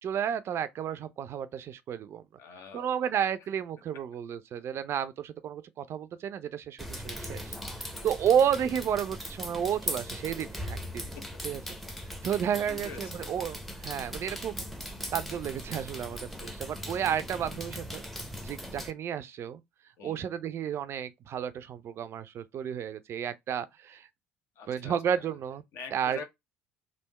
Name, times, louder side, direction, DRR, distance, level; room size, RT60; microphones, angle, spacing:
voice 1, 0.0-2.2 2.7-11.0 11.4-11.6 12.2-14.6 15.1-18.0 18.4-19.6 20.0-24.1 24.7-25.6 25.9-26.2, right 8 dB, 45° right, 0.4 m, -32 dB
voice 2, 2.4-3.1 3.9-4.0 7.9-8.1 11.1-11.2 12.6-13.3 16.4-16.6 20.0-20.2 24.6-25.3 25.7-26.2, left 5 dB, 50° left, 1.0 m, -45 dB
sound 1, 6.8-18.9, equal, ahead, 0.8 m, -39 dB
3.4 x 2.7 x 4.0 m
figure-of-eight pair, 60°, 6 cm